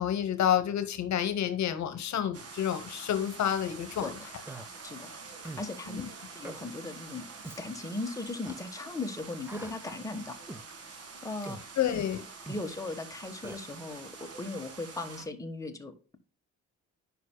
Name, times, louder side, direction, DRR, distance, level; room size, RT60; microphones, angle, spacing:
voice 1, 0.0-4.1 5.9-6.0 11.8-12.2, left 10 dB, 65° left, 1.0 m, -29 dB
sound 1, 2.3-15.3, right 4 dB, 50° right, 1.8 m, -47 dB
Human voice, 4.5-4.7 5.4-5.7 6.4-6.6 7.4-7.6 8.4-8.6 9.5-9.8 10.5-10.7 11.5-11.7 12.5-12.6 13.4-13.6, right 2 dB, 10° right, 0.6 m, -43 dB
voice 2, 5.6-6.1 6.3-7.3 7.6-10.4 11.2-11.6 12.5-16.2, left 2 dB, 10° left, 1.2 m, -38 dB
9.5 x 5.5 x 2.2 m
cardioid pair, 90°, 30 cm